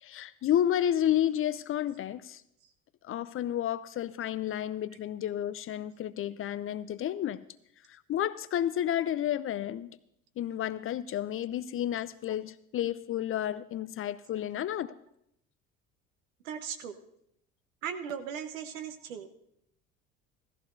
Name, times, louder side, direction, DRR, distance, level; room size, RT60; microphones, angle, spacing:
voice 1, 0.0-2.4 3.0-7.5 7.9-9.9 10.4-14.9, left 11 dB, 35° left, 16 dB, 0.5 m, -31 dB
voice 2, 16.4-17.0 17.8-19.3, right 7 dB, 75° right, 8 dB, 1.2 m, -37 dB
16.0 x 14.0 x 2.6 m, 0.76 s
figure-of-eight pair, 65°, 41 cm